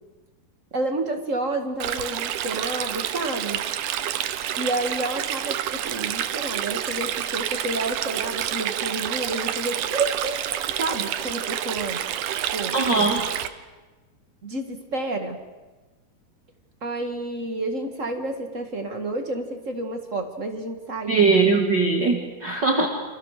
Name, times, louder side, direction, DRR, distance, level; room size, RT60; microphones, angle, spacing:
voice 1, 0.7-3.6 4.6-12.0 12.5-12.7 14.4-15.4 16.8-21.3, right 2 dB, 50° right, 5 dB, 0.9 m, -30 dB
Stream, 1.8-13.5, right 11 dB, 70° right, 2.1 m, -28 dB
voice 2, 12.7-13.2 21.1-22.9, right 4 dB, 35° right, 2 dB, 2.3 m, -20 dB
29.0 x 27.5 x 6.7 m, 1.2 s
omnidirectional pair, 4.7 m